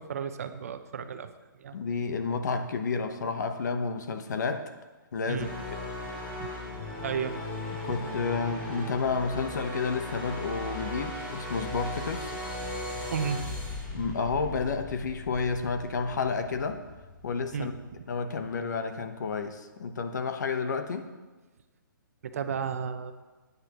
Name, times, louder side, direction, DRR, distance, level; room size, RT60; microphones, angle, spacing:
voice 1, 0.0-1.8 5.3-5.5 6.4-6.5 7.0-7.3 7.9-8.1 13.1-13.5 13.8-14.1 17.5-18.1 22.2-23.1, right 7 dB, 45° right, 9 dB, 0.8 m, -34 dB
voice 2, 1.7-4.7 5.1-5.5 7.8-12.3 13.9-16.8 17.2-17.7 18.1-21.1, left 4 dB, 55° left, 7 dB, 1.0 m, -30 dB
sound 1, 5.4-18.4, left 1 dB, 15° left, 3.3 m, -38 dB
15.5 x 9.5 x 3.0 m, 1.2 s
hypercardioid pair, 170°, 11 cm